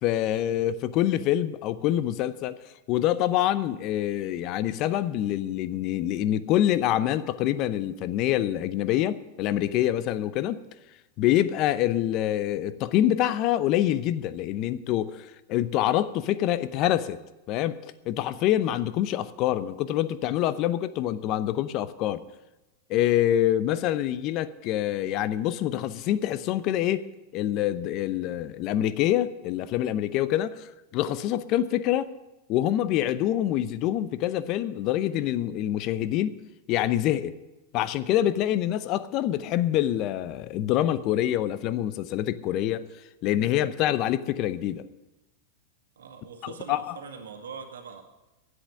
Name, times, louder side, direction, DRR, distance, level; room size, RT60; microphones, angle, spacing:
voice 1, 0.0-10.6 11.2-17.2 17.5-22.2 22.9-27.0 27.3-32.1 32.5-36.3 36.7-37.3 37.7-42.8 43.2-44.8 46.4-47.0, left 12 dB, 45° left, 14 dB, 0.7 m, -26 dB
voice 2, 46.0-48.0, right 6 dB, 85° right, 3 dB, 1.8 m, -42 dB
10.5 x 8.0 x 9.8 m, 1.0 s
hypercardioid pair, 110°, 0 cm